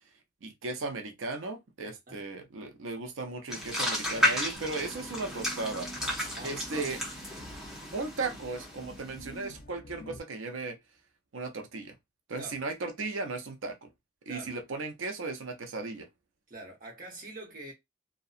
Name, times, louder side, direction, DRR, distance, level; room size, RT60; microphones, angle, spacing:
voice 1, 0.4-7.0 7.9-10.8 11.3-12.0 12.3-13.9 14.3-16.1, right 3 dB, 90° right, 0.6 m, -36 dB
voice 2, 1.8-2.2 4.1-4.3 6.2-6.5 12.4-12.6 14.3-14.5 16.5-17.7, right 2 dB, 45° right, 1.0 m, -45 dB
sound 1, 3.5-9.3, left 1 dB, 5° right, 0.7 m, -33 dB
sound 2, 4.5-10.2, equal, 50° left, 0.5 m, -49 dB
2.7 x 2.2 x 2.4 m
head